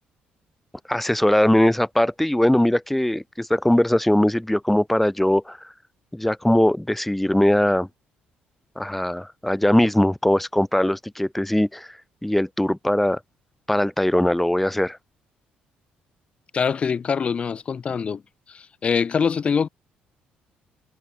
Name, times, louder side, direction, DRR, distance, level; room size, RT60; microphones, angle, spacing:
voice 1, 0.9-5.7 6.1-7.9 8.8-11.9 12.2-13.2 13.7-15.0, left 1 dB, 5° left, 0.9 m, -20 dB
voice 2, 16.5-18.2 18.5-19.7, left 6 dB, 35° left, 0.7 m, -24 dB
cardioid pair, 110°, 3 cm